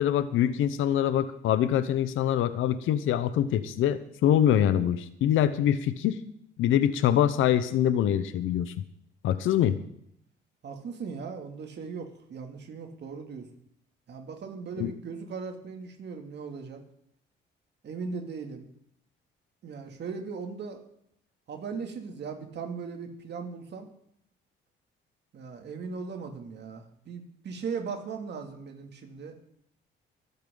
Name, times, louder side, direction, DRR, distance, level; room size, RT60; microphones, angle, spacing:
voice 1, 0.0-6.2 6.6-8.7 9.2-9.8 14.8-14.9, left 10 dB, 85° left, 13 dB, 0.9 m, -24 dB
voice 2, 10.6-13.5 14.1-16.8 17.8-18.7 19.6-20.8 21.5-23.9 25.3-29.3, right 5 dB, 60° right, 3 dB, 2.7 m, -38 dB
25.5 x 8.7 x 4.0 m, 0.71 s
cardioid pair, 90°, 20 cm